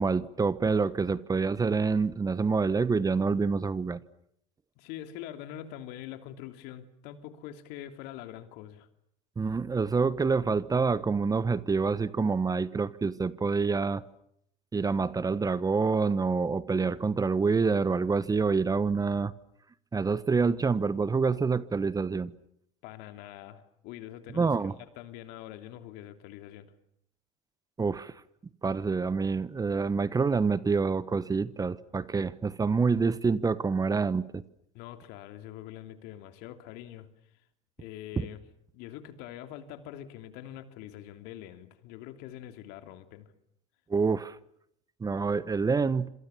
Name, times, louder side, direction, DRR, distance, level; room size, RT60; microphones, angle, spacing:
voice 1, 0.0-4.0 9.4-14.0 14.7-19.3 19.9-22.3 24.3-24.7 27.8-28.1 28.6-34.4 38.2-38.3 43.9-44.4 45.0-46.1, right 4 dB, 20° right, 1.2 m, -27 dB
voice 2, 4.8-8.9 22.8-24.5 25.0-26.7 34.7-37.1 37.8-38.4 38.7-43.3, left 12 dB, 60° left, 3.0 m, -44 dB
27.5 x 26.5 x 7.2 m
hypercardioid pair, 80°, 19 cm